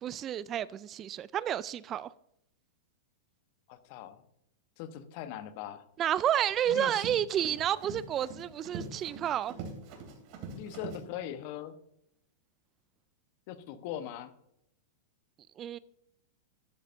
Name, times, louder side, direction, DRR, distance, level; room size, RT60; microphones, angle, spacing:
voice 1, 0.0-2.1 6.0-9.6 15.6-15.8, right 10 dB, 35° right, 0.3 m, -30 dB
voice 2, 3.7-4.2 4.8-5.8 6.7-7.0 10.5-11.8 13.5-14.3, left 10 dB, 55° left, 1.0 m, -40 dB
Run, 6.2-11.0, right 4 dB, 50° right, 2.9 m, -44 dB
12.0 x 10.0 x 2.6 m
hypercardioid pair, 100°, 0 cm